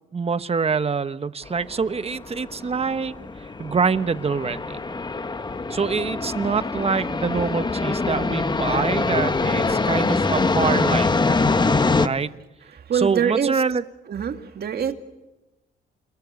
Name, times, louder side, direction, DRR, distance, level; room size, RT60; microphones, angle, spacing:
voice 1, 0.1-4.8 5.7-11.1 12.0-12.3 12.9-13.8, right 5 dB, 30° right, 12 dB, 1.1 m, -25 dB
sound 1, 1.5-12.1, left 3 dB, 20° left, 1.2 m, -24 dB
voice 2, 12.9-13.6 14.1-14.9, right 8 dB, 50° right, 6 dB, 2.3 m, -24 dB
29.5 x 22.0 x 8.4 m, 1.0 s
cardioid pair, 90°, 20 cm